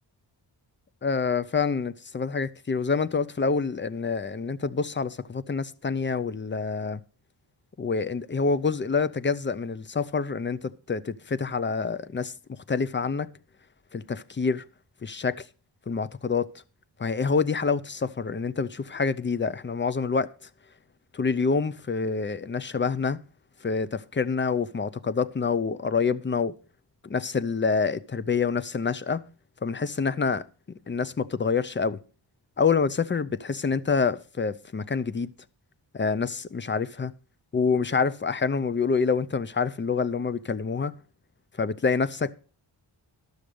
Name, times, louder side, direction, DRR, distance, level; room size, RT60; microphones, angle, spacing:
voice 1, 1.0-7.0 7.8-13.3 13.9-14.6 15.0-15.4 15.9-16.5 17.0-20.3 21.1-23.2 23.6-26.5 27.0-29.2 29.6-30.4 30.9-32.0 32.6-35.3 35.9-37.1 37.5-40.9 41.6-42.3, left 5 dB, 25° left, 0.5 m, -27 dB
12.5 x 6.4 x 5.0 m
wide cardioid pair, 115°, 45 cm